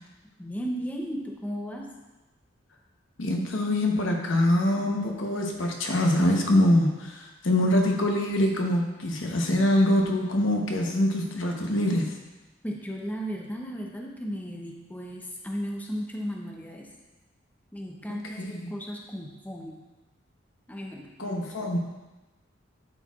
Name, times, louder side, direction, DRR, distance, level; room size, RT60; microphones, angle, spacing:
voice 1, 0.4-1.9 12.6-16.9 17.7-19.8 20.7-21.7, equal, 10° left, -1 dB, 0.6 m, -35 dB
voice 2, 3.2-12.1 18.1-18.7 21.2-21.8, left 1 dB, 85° left, 1 dB, 0.9 m, -24 dB
11.0 x 4.3 x 2.4 m, 1.1 s
head